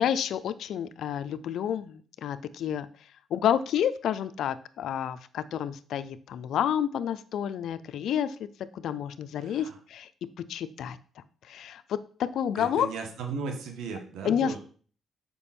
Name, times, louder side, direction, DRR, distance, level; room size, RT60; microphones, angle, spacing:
voice 1, 0.0-2.9 3.3-8.5 8.7-10.1 10.4-11.0 11.5-12.9 14.2-14.6, left 9 dB, 70° left, 14 dB, 0.5 m, -29 dB
voice 2, 9.4-9.8 12.6-14.6, right 4 dB, 80° right, 4 dB, 1.6 m, -36 dB
7.0 x 5.2 x 4.3 m, 0.43 s
cardioid pair, 90°, 0 cm